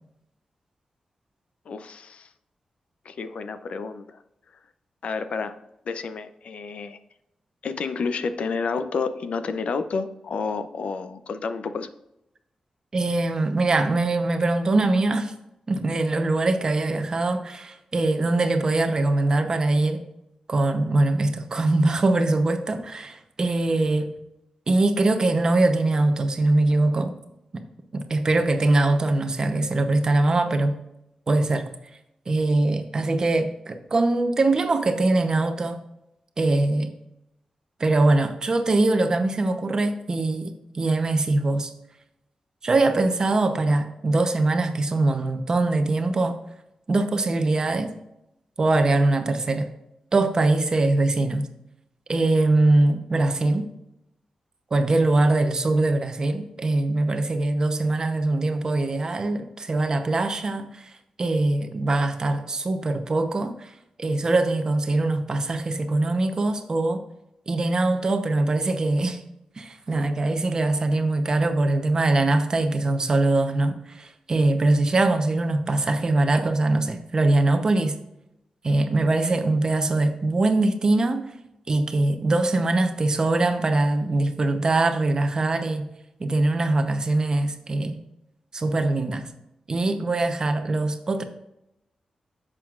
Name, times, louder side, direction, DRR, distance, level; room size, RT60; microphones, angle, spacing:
voice 1, 1.7-2.3 3.0-4.2 5.0-7.0 7.6-11.9, left 4 dB, 70° left, 10 dB, 0.6 m, -30 dB
voice 2, 12.9-15.3 15.7-20.0 20.5-24.1 24.7-27.1 27.5-27.6 27.9-30.8 31.3-31.6 32.3-35.8 36.4-36.9 37.8-41.7 42.6-46.4 46.9-47.9 48.6-49.7 50.1-51.5 52.1-53.7 54.7-60.9 61.2-63.7 64.0-67.0 67.5-69.2 69.6-78.0 78.6-81.3 81.7-85.9 86.2-88.0 88.5-89.3 89.7-91.2, right 2 dB, 35° right, 7 dB, 0.8 m, -22 dB
11.0 x 7.5 x 2.4 m, 0.86 s
wide cardioid pair, 180°, 2 cm